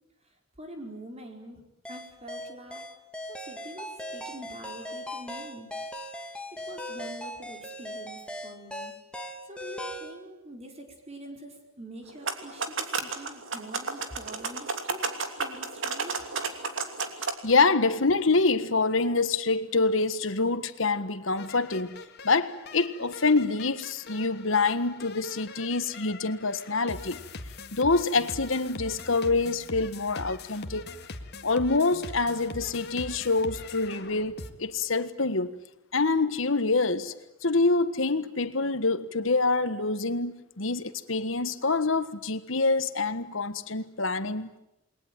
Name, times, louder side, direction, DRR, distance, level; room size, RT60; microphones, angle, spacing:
voice 1, 0.6-1.6 1.9-2.9 3.3-5.8 6.2-9.0 9.4-15.1 15.4-16.2, right 1 dB, 30° right, 5.1 m, -45 dB
sound 1, 1.9-10.1, equal, 5° left, 2.5 m, -39 dB
sound 2, 12.1-17.3, right 4 dB, 65° right, 3.0 m, -32 dB
voice 2, 17.4-27.2 27.7-30.9 31.4-35.6 35.9-37.1 37.4-44.5, left 3 dB, 70° left, 1.6 m, -26 dB
sound 3, 21.4-34.5, left 3 dB, 55° left, 1.9 m, -43 dB
29.0 x 21.5 x 9.2 m
head